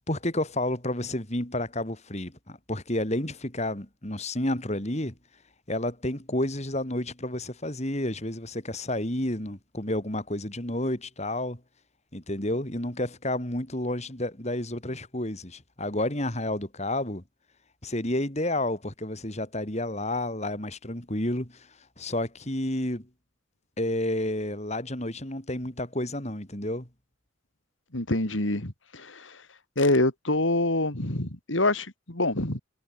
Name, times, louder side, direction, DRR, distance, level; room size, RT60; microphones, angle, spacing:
voice 1, 0.1-5.1 5.7-11.6 12.1-17.2 17.8-21.7 22.0-23.1 23.8-26.9, left 1 dB, 35° left, 3.9 m, -30 dB
voice 2, 27.9-29.4 29.8-32.6, left 2 dB, 75° left, 3.6 m, -26 dB
head